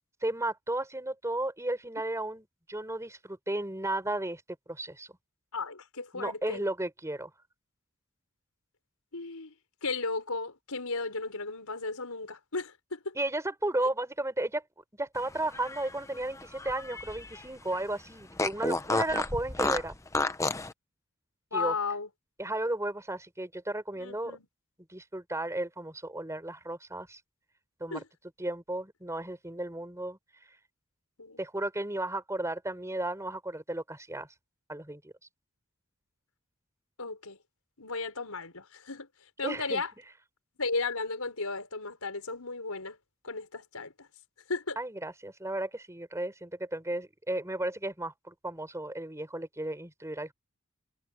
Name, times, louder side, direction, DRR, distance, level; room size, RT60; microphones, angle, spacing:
voice 1, 0.2-4.4 4.7-5.1 6.1-7.3 13.1-14.6 15.0-19.9 21.5-21.7 22.4-24.4 24.9-27.2 27.8-28.0 28.4-30.2 31.4-34.3 34.7-35.1 39.4-39.8 44.8-50.3, right 1 dB, 15° right, 4.7 m, -34 dB
voice 2, 5.5-6.6 9.1-9.5 9.8-13.2 21.5-22.1 24.0-24.5 27.9-28.0 31.2-31.4 37.0-37.4 37.8-39.1 39.4-39.9 40.6-43.0 43.2-44.1 44.5-44.8, left 3 dB, 85° left, 5.1 m, -35 dB
Fart, 15.4-17.4 17.7-17.8 18.4-20.7, left 2 dB, 15° left, 0.8 m, -31 dB
head